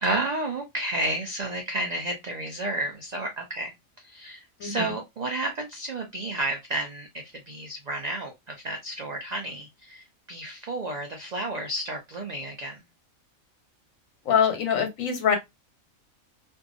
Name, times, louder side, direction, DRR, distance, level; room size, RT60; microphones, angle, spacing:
voice 1, 0.0-3.7 4.0-12.8, right 2 dB, 90° right, 0.3 m, -31 dB
voice 2, 14.3-15.4, left 7 dB, 75° left, 1.2 m, -23 dB
2.6 x 2.3 x 2.4 m
omnidirectional pair, 1.4 m